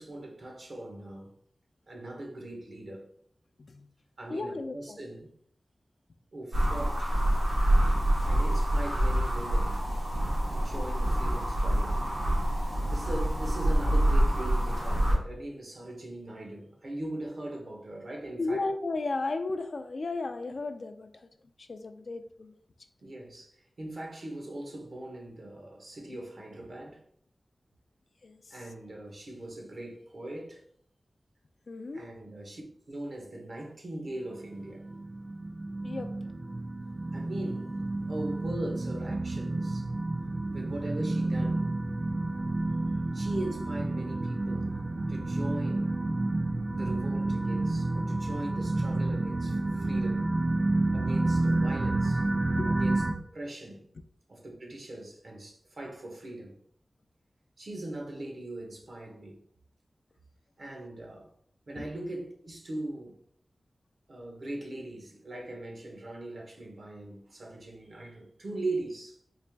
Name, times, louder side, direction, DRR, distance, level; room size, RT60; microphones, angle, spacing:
voice 1, 0.0-1.3 1.9-3.1 4.2-5.3 6.3-7.1 8.3-9.8 10.5-12.0 12.9-18.6 23.0-27.0 28.5-30.6 31.9-32.6 32.9-34.9 37.1-37.8 38.1-39.9 40.5-41.8 43.1-46.0 46.7-50.3 50.9-52.2 52.7-53.9 54.3-56.6 57.6-59.4 60.6-61.3 61.7-63.2 64.1-69.2, right 1 dB, 70° right, 1.0 m, -40 dB
voice 2, 4.3-5.0 12.7-12.8 18.4-21.3 21.6-22.5 28.2-28.6 31.7-32.1 35.8-36.1 52.4-52.7 61.8-61.9, left 3 dB, 65° left, 0.4 m, -35 dB
sound 1, 6.5-15.2, right 1 dB, 85° right, 1.4 m, -26 dB
sound 2, 34.3-53.1, right 2 dB, 40° right, 0.4 m, -30 dB
4.0 x 2.5 x 3.4 m
cardioid pair, 55°, 0 cm